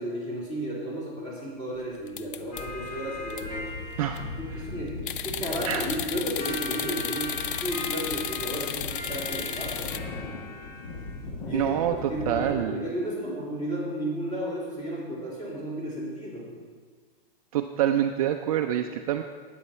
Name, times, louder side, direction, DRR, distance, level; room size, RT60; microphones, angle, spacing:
voice 1, 0.0-3.7 4.4-5.0 5.2-10.2 11.4-11.7 12.1-16.5, right 1 dB, 15° left, -5 dB, 3.2 m, -33 dB
sound 1, 2.1-2.9 3.3-3.4 3.9-4.3 5.1-10.0, left 10 dB, 60° left, 0.7 m, -33 dB
sound 2, 2.5-12.5, left 2 dB, 45° left, 1.6 m, -37 dB
sound 3, 4.5-11.5, right 3 dB, 20° right, 1.7 m, -53 dB
voice 2, 11.5-12.8 17.5-19.2, right 10 dB, 40° right, 5 dB, 0.5 m, -26 dB
13.0 x 9.3 x 4.3 m, 1.5 s
hypercardioid pair, 155°, 29 cm